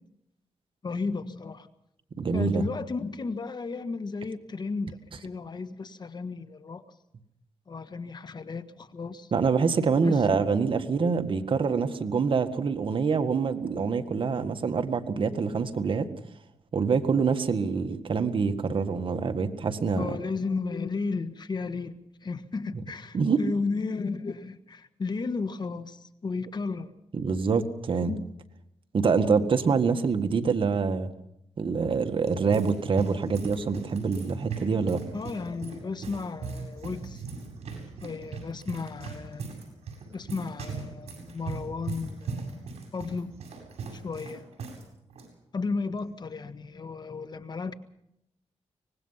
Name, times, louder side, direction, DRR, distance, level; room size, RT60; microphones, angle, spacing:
voice 1, 0.8-1.7 2.3-6.8 7.7-9.3 10.0-10.5 19.9-21.9 22.2-26.9 28.0-28.3 35.1-37.2 38.0-39.5 40.1-43.3 43.9-44.4 45.5-47.7, left 4 dB, 40° left, 11 dB, 1.5 m, -34 dB
voice 2, 2.2-2.7 9.3-16.1 16.7-20.2 23.1-23.4 27.1-28.1 28.9-31.1 31.6-35.0, right 5 dB, 50° right, 7 dB, 1.8 m, -25 dB
Footsteps - Running indoors, 31.9-44.8 45.1-45.3 46.0-46.3, right 4 dB, 75° right, 7.9 m, -39 dB
24.5 x 19.5 x 5.8 m, 0.81 s
cardioid pair, 85°, 11 cm